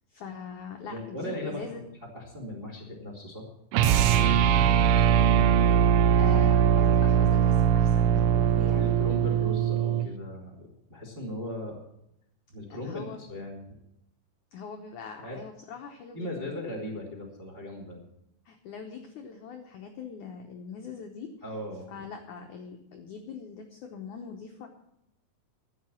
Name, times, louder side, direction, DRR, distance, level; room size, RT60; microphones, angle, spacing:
voice 1, 0.1-1.8 6.2-8.9 12.8-13.2 14.5-16.6 18.4-21.3 21.9-24.7, left 6 dB, 80° left, 3 dB, 1.7 m, -42 dB
voice 2, 0.8-1.8 2.1-3.4 3.8-5.4 8.8-11.8 12.5-13.6 15.2-15.4 16.1-18.0 21.4-22.1, left 1 dB, 20° right, 0 dB, 1.5 m, -38 dB
sound 1, 3.7-10.1, right 9 dB, 85° right, 2.2 m, -21 dB
12.5 x 8.8 x 7.2 m, 0.81 s
omnidirectional pair, 5.1 m